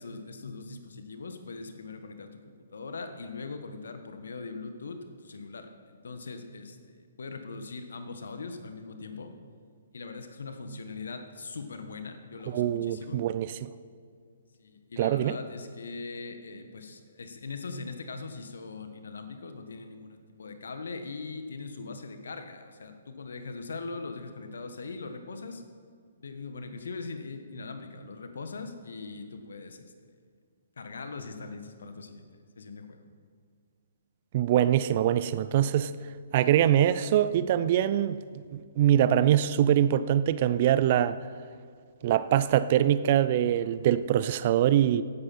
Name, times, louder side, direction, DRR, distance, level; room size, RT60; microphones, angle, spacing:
voice 1, 0.0-9.3 9.9-13.2 14.6-25.6 26.2-29.9 30.8-33.0, left 4 dB, 70° left, 1.4 m, -41 dB
voice 2, 12.5-13.7 15.0-15.4 34.3-35.9 36.3-38.2 38.5-41.2 42.0-45.0, right 11 dB, 40° right, 0.5 m, -23 dB
15.5 x 11.0 x 4.4 m
figure-of-eight pair, 125°, 0 cm